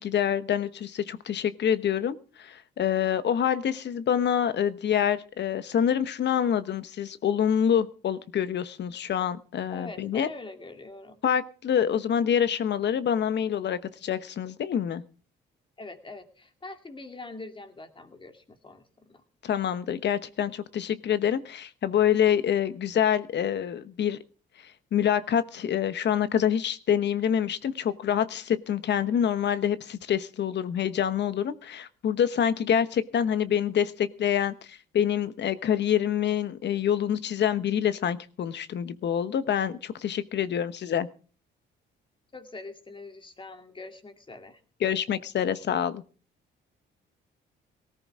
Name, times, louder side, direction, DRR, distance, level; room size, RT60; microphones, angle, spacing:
voice 1, 0.0-10.3 11.2-15.0 19.4-24.2 24.6-41.1 44.8-46.0, left 9 dB, 60° left, 14 dB, 1.1 m, -26 dB
voice 2, 9.7-11.2 15.8-19.2 42.3-44.6, left 3 dB, 25° left, 6 dB, 2.5 m, -43 dB
18.5 x 14.0 x 3.7 m, 0.39 s
cardioid pair, 90°, 20 cm